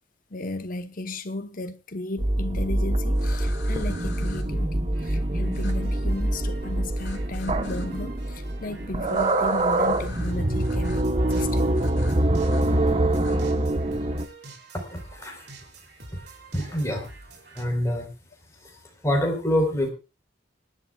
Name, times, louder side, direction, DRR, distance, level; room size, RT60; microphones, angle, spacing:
voice 1, 0.3-11.7, left 2 dB, 45° left, 0.9 m, -35 dB
sound 1, 2.2-14.3, right 1 dB, 35° right, 1.0 m, -25 dB
sound 2, 3.1-4.4 5.5-5.7 6.9-7.9 9.0-10.3 10.6-11.0 11.3-11.5 11.7-12.6 13.1-13.4, left 5 dB, 75° left, 3.6 m, -46 dB
sound 3, 4.5-17.6, right 3 dB, 60° right, 3.0 m, -48 dB
voice 2, 14.7-15.5 16.1-16.2 16.5-17.1 17.5-18.1 18.6-19.9, left 1 dB, 15° left, 4.0 m, -26 dB
25.5 x 11.0 x 2.3 m
head